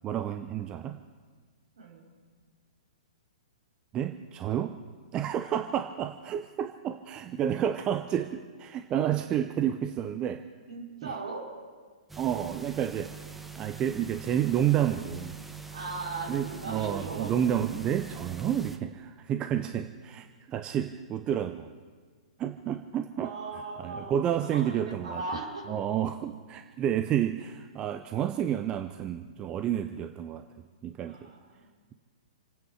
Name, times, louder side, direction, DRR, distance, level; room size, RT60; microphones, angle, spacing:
voice 1, 0.0-1.0 3.9-4.8 5.1-10.4 11.0-11.1 12.2-13.1 13.6-15.3 16.3-21.7 22.4-23.3 23.8-25.2 25.7-31.3, right 10 dB, 20° right, 8 dB, 0.7 m, -30 dB
voice 2, 10.7-11.4 15.7-17.3 23.2-24.1 24.4-25.6 31.0-31.7, right 3 dB, 60° right, -3 dB, 5.1 m, -38 dB
sound 1, 12.1-18.8, right 6 dB, 5° right, 1.0 m, -44 dB
28.5 x 9.5 x 4.9 m, 1.6 s
figure-of-eight pair, 115°, 4 cm